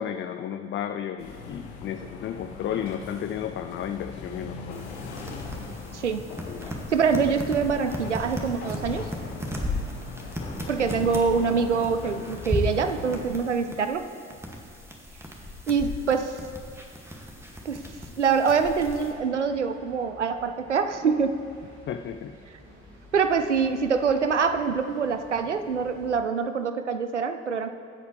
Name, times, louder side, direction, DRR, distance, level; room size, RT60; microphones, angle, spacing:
voice 1, 0.0-4.8 6.5-6.6 10.8-11.1 21.9-22.3, left 9 dB, 35° left, 8 dB, 0.5 m, -33 dB
sound 1, 1.2-13.3, left 4 dB, 70° left, 1.3 m, -40 dB
sound 2, 4.7-19.1, left 1 dB, 5° right, 1.9 m, -36 dB
voice 2, 5.9-6.3 6.6-9.1 10.7-14.1 15.7-16.4 17.7-17.8 18.2-21.4 23.1-27.7, right 5 dB, 90° right, 9 dB, 0.5 m, -25 dB
sound 3, 17.1-26.2, equal, 50° right, 3.2 m, -51 dB
23.0 x 8.0 x 3.2 m, 2.2 s
figure-of-eight pair, 45°, 34 cm